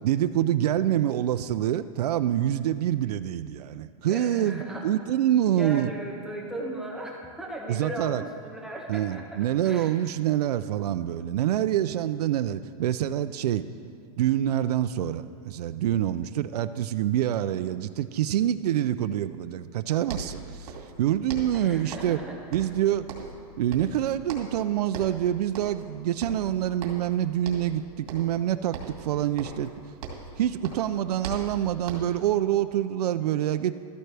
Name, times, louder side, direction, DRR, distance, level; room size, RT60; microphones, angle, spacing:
voice 1, 0.0-5.9 7.7-8.2 8.9-13.6 14.2-22.2 22.5-23.0 23.6-29.7 30.4-33.7, right 11 dB, 90° right, 10 dB, 0.4 m, -26 dB
voice 2, 4.1-4.9 5.5-9.9 21.5-22.7, right 1 dB, 5° right, -2 dB, 0.5 m, -37 dB
sound 1, 19.8-19.9 20.0-21.0 21.3-22.2 22.5-23.5 23.7-24.6 24.9-25.2 25.5-25.9 26.2-27.1 27.4-27.8 28.1-28.4 28.7-30.4 30.6-32.3, right 4 dB, 65° right, 2.4 m, -39 dB
13.5 x 13.0 x 3.4 m, 2.3 s
supercardioid pair, 175°, 20 cm